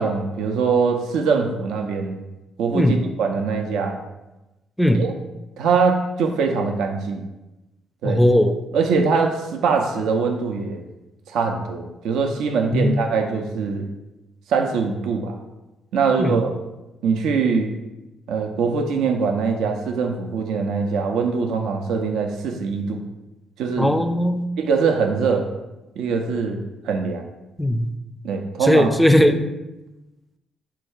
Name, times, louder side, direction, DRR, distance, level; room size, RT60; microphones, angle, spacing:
voice 1, 0.0-2.2 2.6-4.0 4.9-5.1 5.6-7.3 8.0-8.2 8.7-10.8 11.3-13.9 14.5-15.4 15.9-16.5 17.0-17.7 18.3-23.0 23.6-23.9 24.6-25.5 26.0-27.3 28.2-28.9, right 5 dB, 70° right, 4 dB, 0.4 m, -22 dB
voice 2, 8.0-8.6 12.7-13.0 16.2-16.4 23.8-24.5 27.6-27.9 28.6-29.4, left 1 dB, 5° left, 8 dB, 0.4 m, -18 dB
4.4 x 2.3 x 4.5 m, 1.0 s
hypercardioid pair, 45°, 0 cm